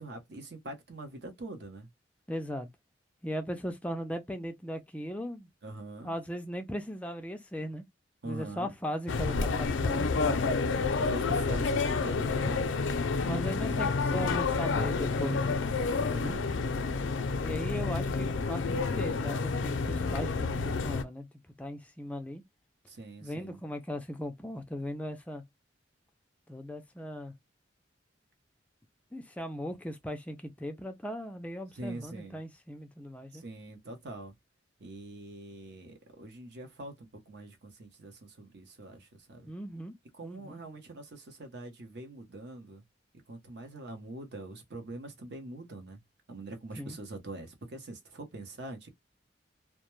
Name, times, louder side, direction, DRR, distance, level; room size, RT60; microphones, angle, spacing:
voice 1, 0.0-1.9 5.6-6.1 8.2-8.7 10.3-10.7 11.0-12.7 13.1-14.0 16.2-16.5 22.9-23.6 31.7-32.4 33.3-34.3 34.8-39.5 40.1-42.8 43.3-46.0 46.3-48.9, right 2 dB, 60° right, 0.7 m, -44 dB
voice 2, 2.3-2.7 3.2-5.5 6.0-7.8 8.2-10.4 13.3-15.7 16.0-16.4 17.4-21.3 21.6-22.4 23.2-25.4 26.5-27.3 29.1-33.4 39.5-39.9 40.2-40.6 46.8-47.0, equal, 5° left, 0.3 m, -38 dB
sound 1, 9.1-21.0, left 4 dB, 85° left, 0.4 m, -29 dB
2.2 x 2.1 x 3.0 m
head